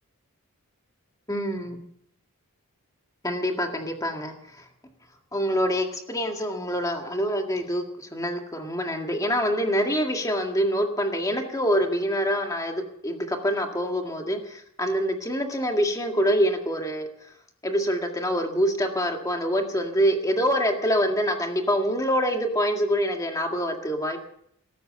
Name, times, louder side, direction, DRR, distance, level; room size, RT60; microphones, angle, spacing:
voice 1, 1.3-1.8 3.2-4.6 5.3-17.1 17.6-24.2, equal, 15° left, 3 dB, 1.9 m, -25 dB
14.5 x 13.0 x 6.9 m, 0.68 s
head